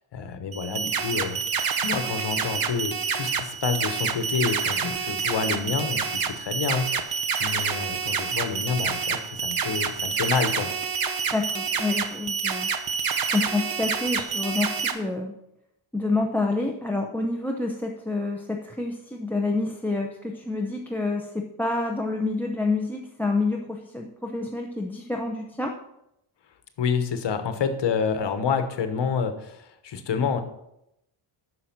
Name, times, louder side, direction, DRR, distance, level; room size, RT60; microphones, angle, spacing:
voice 1, 0.1-1.4 1.8-10.7 26.8-30.4, left 6 dB, 55° left, 8 dB, 1.2 m, -28 dB
sound 1, 0.5-14.9, right 6 dB, 45° right, 0.9 m, -28 dB
voice 2, 11.3-12.7 13.3-15.3 15.9-25.7, left 3 dB, 5° left, 3 dB, 0.6 m, -28 dB
9.7 x 6.4 x 5.9 m, 0.83 s
wide cardioid pair, 140°, 49 cm